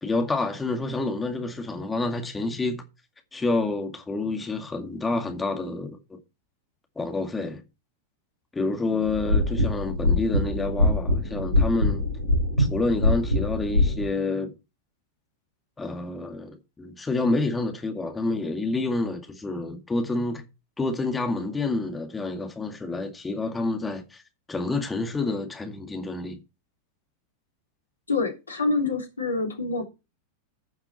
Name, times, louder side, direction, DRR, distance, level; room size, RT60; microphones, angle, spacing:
voice 1, 0.0-2.8 3.3-6.0 7.0-7.6 8.5-12.1 12.6-14.5 15.8-20.4 20.8-24.2 24.5-26.4, left 3 dB, 10° left, 2.1 m, -28 dB
sound 1, 9.0-14.0, left 1 dB, 85° right, 5.1 m, -23 dB
voice 2, 28.1-29.8, left 3 dB, 75° left, 3.1 m, -26 dB
15.5 x 5.9 x 4.2 m
figure-of-eight pair, 90°, 0 cm